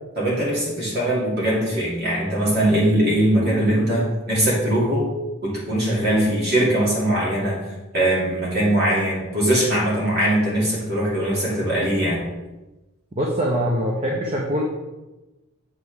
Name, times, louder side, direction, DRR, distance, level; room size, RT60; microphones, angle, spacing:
voice 1, 0.2-5.1 5.4-7.6 7.9-12.2, right 1 dB, 50° right, -6 dB, 2.8 m, -21 dB
voice 2, 13.2-14.6, equal, 30° right, -2 dB, 0.9 m, -23 dB
7.7 x 6.2 x 3.6 m, 1.1 s
head